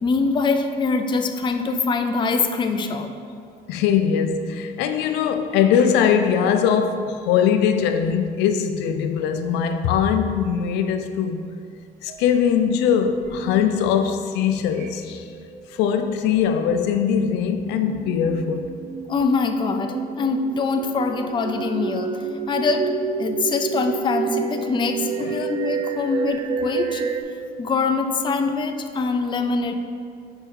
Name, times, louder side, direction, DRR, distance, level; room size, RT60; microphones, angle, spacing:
voice 1, 0.0-3.1 19.1-22.9 23.2-27.0 27.6-29.7, left 4 dB, 30° left, 6 dB, 0.4 m, -24 dB
voice 2, 3.7-11.5 12.0-15.2 15.8-18.7 25.2-25.4, left 7 dB, 90° left, 7 dB, 0.4 m, -21 dB
sound 1, 12.1-12.6 13.2-13.3 14.7-15.2 15.4-16.4 17.7-27.2, right 5 dB, 50° right, 0.5 m, -29 dB
5.0 x 4.5 x 4.6 m, 2.2 s
cardioid pair, 110°, 17 cm